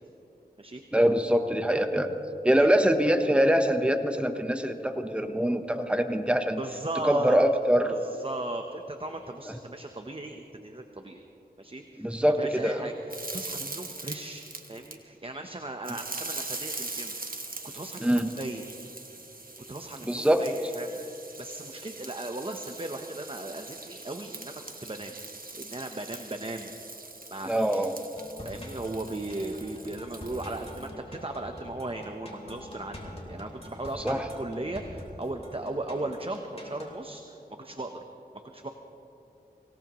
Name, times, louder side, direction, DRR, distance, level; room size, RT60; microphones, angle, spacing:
voice 1, 0.9-2.1 2.4-6.6 7.0-7.9 9.5-9.6 12.0-12.9 18.0-18.3 20.0-20.4 27.4-27.9 34.0-34.3, equal, 5° right, 6 dB, 1.0 m, -24 dB
voice 2, 6.6-7.4 7.8-11.3 11.6-12.1 12.4-17.1 17.6-18.6 19.7-25.2 25.5-26.8 27.3-27.9 28.4-38.0 38.3-38.7, right 2 dB, 30° right, 4 dB, 0.9 m, -37 dB
sound 1, 13.1-15.0 15.8-30.9, right 2 dB, 55° right, 1.4 m, -42 dB
sound 2, 28.2-37.0, left 1 dB, 35° left, 3.2 m, -45 dB
25.0 x 17.5 x 3.1 m, 3.0 s
wide cardioid pair, 40°, 17 cm